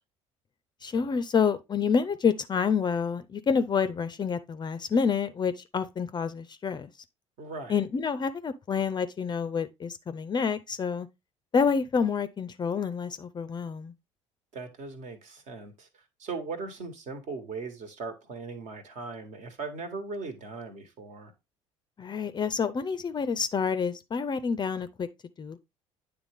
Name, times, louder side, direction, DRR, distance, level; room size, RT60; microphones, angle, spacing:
voice 1, 0.8-6.9 7.7-11.1 11.5-13.9 22.0-25.1 25.4-25.6, left 6 dB, 25° left, 0.5 m, -28 dB
voice 2, 7.4-7.8 14.5-15.9 16.2-21.3, right 4 dB, 50° right, 1.4 m, -39 dB
9.6 x 3.5 x 3.5 m
figure-of-eight pair, 55°, 16 cm